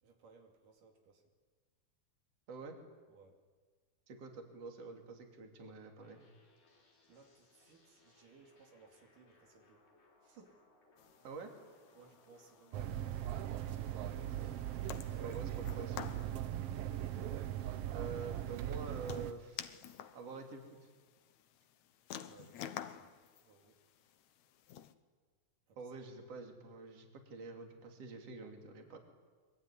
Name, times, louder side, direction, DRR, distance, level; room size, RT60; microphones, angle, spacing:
voice 1, 0.0-1.2 3.1-3.4 7.1-9.9 10.2-10.6 11.9-12.9 15.0-15.4 22.3-23.1 23.4-23.8 25.7-25.8, right 4 dB, 90° right, 3 dB, 4.3 m, -62 dB
voice 2, 4.1-6.2 11.2-11.6 14.2-14.5 15.2-16.3 17.9-19.7 20.1-20.9 22.4-22.5 25.8-29.0, right 4 dB, 50° right, 3 dB, 3.8 m, -47 dB
sound 1, 6.0-15.1, left 3 dB, 85° left, 6.8 m, -68 dB
sound 2, 11.0-24.9, left 10 dB, 70° left, 2.3 m, -52 dB
sound 3, 12.7-19.3, right 12 dB, 65° right, 1.6 m, -39 dB
23.5 x 23.0 x 10.0 m, 1.5 s
omnidirectional pair, 3.6 m